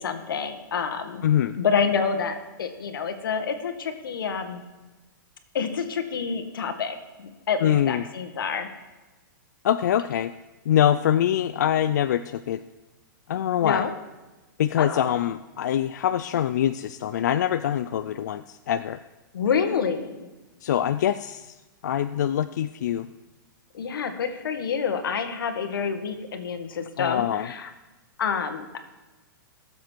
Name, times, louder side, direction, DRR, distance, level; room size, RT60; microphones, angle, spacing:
voice 1, 0.0-1.2 1.6-4.6 5.5-8.7 13.6-13.9 14.8-15.1 19.3-20.3 23.7-27.7 28.2-28.8, left 6 dB, 80° left, 7 dB, 1.7 m, -28 dB
voice 2, 1.2-1.6 7.6-8.0 9.6-10.3 10.7-12.6 13.3-13.9 14.6-19.0 20.6-21.5 21.8-23.1 27.0-27.5, left 10 dB, 55° left, 11 dB, 0.4 m, -24 dB
18.0 x 7.4 x 4.6 m, 1.1 s
hypercardioid pair, 175°, 11 cm